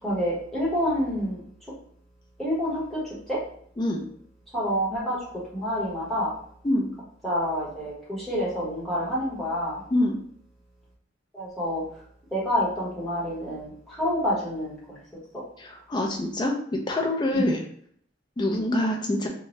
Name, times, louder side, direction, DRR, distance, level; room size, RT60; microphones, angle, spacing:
voice 1, 0.0-1.4 2.4-3.4 4.5-6.3 7.2-9.8 11.3-11.8 12.3-15.0 15.3-15.4 17.3-17.5 18.4-18.6, equal, ahead, -9 dB, 1.1 m, -28 dB
voice 2, 15.6-17.6 18.4-19.3, left 1 dB, 25° left, 2 dB, 0.4 m, -25 dB
2.7 x 2.2 x 3.0 m, 0.62 s
head